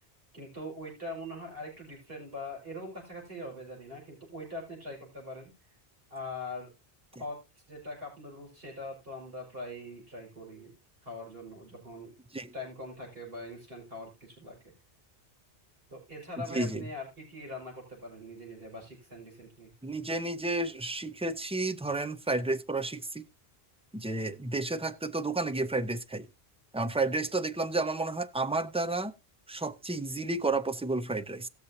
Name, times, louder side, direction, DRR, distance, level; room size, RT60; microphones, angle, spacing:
voice 1, 0.3-5.5 6.1-6.7 7.2-7.4 7.7-10.7 11.0-12.1 12.5-14.7 15.9-19.7, left 1 dB, 65° right, 5.6 m, -42 dB
voice 2, 16.5-16.8 19.8-23.3 23.9-26.3 26.7-29.1 29.5-31.5, right 2 dB, 10° right, 0.3 m, -31 dB
18.5 x 6.6 x 2.7 m
omnidirectional pair, 1.1 m